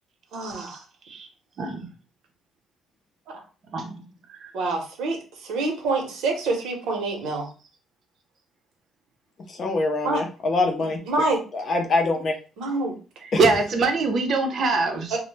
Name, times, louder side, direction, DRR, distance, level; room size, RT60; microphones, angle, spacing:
voice 1, 0.3-0.8 3.3-3.4 4.5-7.5 10.0-10.2 11.1-11.4 12.6-12.9 15.1-15.2, right 3 dB, 80° right, 1 dB, 0.8 m, -26 dB
voice 2, 1.6-1.9 3.7-4.5 13.2-15.2, right 3 dB, 45° right, 4 dB, 0.6 m, -24 dB
voice 3, 9.5-11.0 11.5-12.3 13.3-13.4, left 2 dB, 40° left, 4 dB, 0.5 m, -24 dB
2.1 x 2.0 x 3.1 m, 0.34 s
cardioid pair, 150°, 0 cm